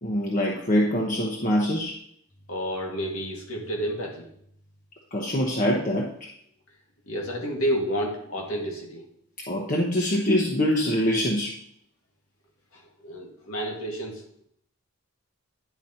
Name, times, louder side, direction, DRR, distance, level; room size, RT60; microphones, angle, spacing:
voice 1, 0.0-2.0 5.1-6.1 9.5-11.5, equal, 40° left, -2 dB, 0.9 m, -24 dB
voice 2, 2.5-4.3 7.1-9.0 13.0-14.4, equal, 90° left, 0 dB, 2.0 m, -30 dB
10.0 x 4.1 x 4.3 m, 0.67 s
head